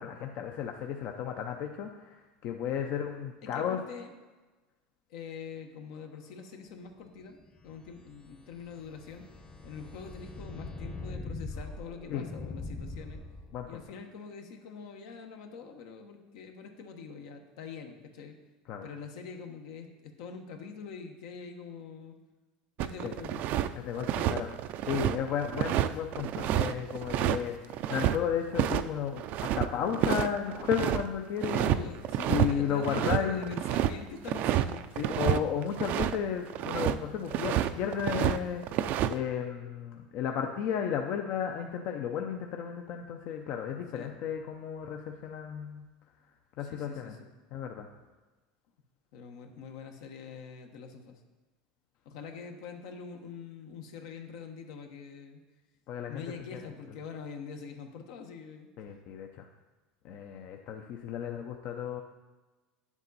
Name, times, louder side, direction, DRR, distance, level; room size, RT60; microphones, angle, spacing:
voice 1, 0.0-3.8 12.1-12.2 13.5-13.8 18.7-18.9 23.0-23.1 23.7-24.5 24.9-31.9 32.3-33.6 35.0-45.9 46.6-47.1 47.5-47.9 55.9-56.2 56.5-56.6 58.8-59.5 60.0-62.0, left 8 dB, 55° left, 4 dB, 0.6 m, -34 dB
voice 2, 3.4-4.1 5.1-7.4 7.6-9.3 9.6-13.2 13.7-18.4 18.8-22.2 22.8-23.4 31.5-35.0 43.9-44.1 46.6-47.3 49.1-51.2 52.0-55.4 56.1-58.7, left 5 dB, 75° left, 4 dB, 1.1 m, -44 dB
sound 1, 7.5-13.8, left 3 dB, 25° left, 0.9 m, -42 dB
sound 2, 22.8-23.7 24.0-28.2 28.6-28.8 29.1-31.0 31.4-31.8 32.0-32.5 32.8-36.2 36.5-37.0 37.3-38.4 38.6-39.1, right 12 dB, 55° right, 0.4 m, -29 dB
9.6 x 7.2 x 4.1 m, 1.2 s
supercardioid pair, 130°, 4 cm